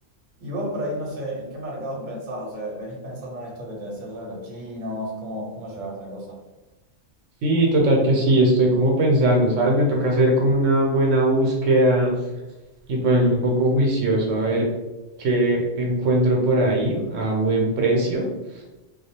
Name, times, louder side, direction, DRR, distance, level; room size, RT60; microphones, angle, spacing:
voice 1, 0.4-6.4, equal, 45° right, -2 dB, 0.7 m, -32 dB
voice 2, 7.4-12.2 12.9-14.7 15.2-18.3, right 1 dB, 75° right, 0 dB, 0.9 m, -20 dB
2.4 x 2.0 x 2.7 m, 1.0 s
omnidirectional pair, 1.3 m